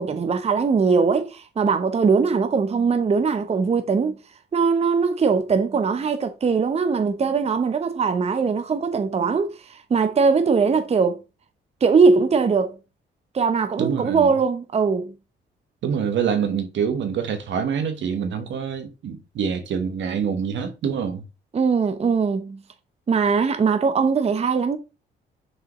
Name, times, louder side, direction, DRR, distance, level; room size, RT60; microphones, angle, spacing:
voice 1, 0.0-4.2 4.5-11.2 11.8-12.8 13.3-15.1 21.5-22.6 23.1-24.8, right 5 dB, 30° right, 0.7 m, -21 dB
voice 2, 13.8-14.3 15.8-21.2, right 7 dB, 70° right, 1.3 m, -26 dB
6.5 x 4.8 x 3.0 m
cardioid pair, 90°, 20 cm